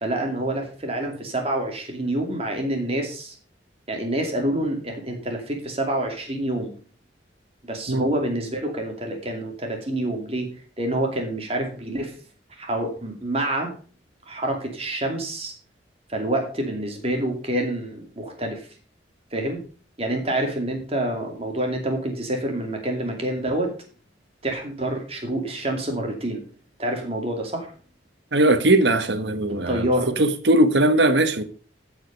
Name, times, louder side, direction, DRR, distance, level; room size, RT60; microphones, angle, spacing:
voice 1, 0.0-3.3 3.9-6.7 7.6-10.5 10.8-12.1 12.6-13.7 14.3-15.5 16.1-18.7 19.3-19.6 20.0-23.7 24.4-26.4 26.8-27.7 29.7-30.1, right 1 dB, 35° right, 2.5 m, -27 dB
voice 2, 28.3-29.8 30.2-31.4, right 1 dB, 70° right, 1.2 m, -19 dB
14.5 x 5.1 x 5.2 m
head